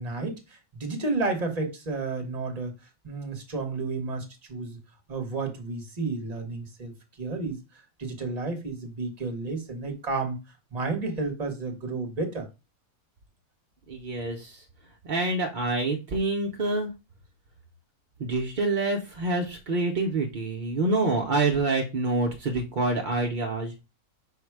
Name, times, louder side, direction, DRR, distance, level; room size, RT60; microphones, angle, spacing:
voice 1, 0.0-2.7 3.0-4.8 5.1-6.9 7.2-7.6 8.0-10.4 10.7-12.5, right 3 dB, 30° right, 0.9 m, -31 dB
voice 2, 13.9-14.6 15.0-16.9 18.2-23.8, right 2 dB, 50° right, 0.5 m, -27 dB
5.6 x 2.1 x 4.6 m
omnidirectional pair, 1.6 m